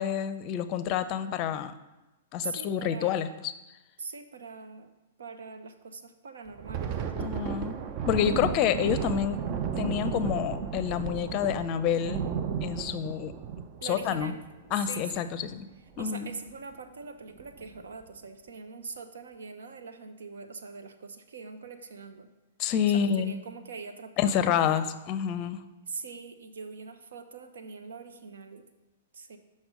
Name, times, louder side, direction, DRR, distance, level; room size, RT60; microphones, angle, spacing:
voice 1, 0.0-1.7 2.3-3.5 7.1-7.8 8.1-9.4 9.8-12.2 12.6-13.3 13.8-14.3 14.7-15.6 16.0-16.3 22.6-23.4 24.2-25.6, left 9 dB, 40° left, 12 dB, 0.6 m, -28 dB
voice 2, 2.4-3.1 4.0-4.9 5.2-7.1 13.8-14.4 14.9-15.3 16.0-22.3 22.9-24.8 25.9-28.6 29.1-29.4, right 4 dB, 75° right, 8 dB, 0.8 m, -42 dB
Thunder, 6.5-15.5 15.9-16.1 16.5-16.7 17.4-17.8, right 7 dB, 40° right, 0.6 m, -34 dB
6.1 x 5.4 x 5.2 m, 1.0 s
hypercardioid pair, 120°, 0 cm